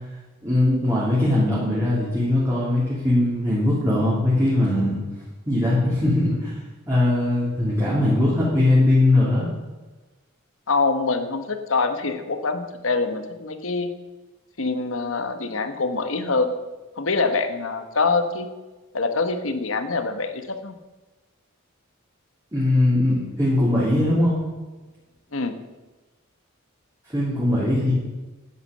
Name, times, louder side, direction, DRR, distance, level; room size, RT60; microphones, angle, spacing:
voice 1, 0.4-5.0 5.5-6.5 6.9-9.4 22.5-24.3 27.1-27.9, left 1 dB, 15° right, -8 dB, 3.2 m, -20 dB
voice 2, 10.7-13.9 14.6-16.5 17.0-18.5 18.9-20.7 25.3-25.5, left 3 dB, 65° left, 8 dB, 1.2 m, -25 dB
11.0 x 9.4 x 6.7 m, 1.2 s
head